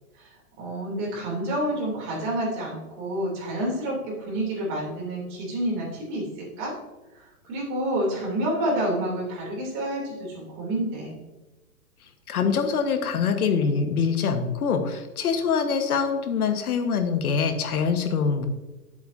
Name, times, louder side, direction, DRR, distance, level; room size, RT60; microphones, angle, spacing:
voice 1, 0.6-6.3 6.6-6.7 7.5-11.1, right 1 dB, 25° right, -3 dB, 3.0 m, -28 dB
voice 2, 12.3-18.5, left 6 dB, 75° left, 7 dB, 1.4 m, -24 dB
10.5 x 7.9 x 2.7 m, 1.1 s
hypercardioid pair, 155°, 44 cm